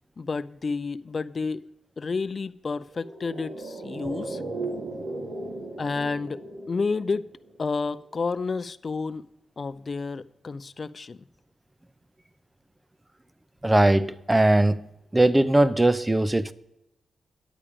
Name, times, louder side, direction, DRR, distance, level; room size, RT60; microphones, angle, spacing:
voice 1, 0.2-1.6 2.0-4.4 5.8-6.4 6.7-7.3 7.6-9.2 9.6-11.2, left 4 dB, 45° left, 0.5 m, -30 dB
sound 1, 2.9-7.5 7.8-7.9, right 2 dB, 60° right, 2.2 m, -36 dB
voice 2, 13.6-14.8 15.1-16.5, right 1 dB, 15° right, 0.6 m, -20 dB
10.0 x 8.6 x 5.0 m
cardioid pair, 60°, 0 cm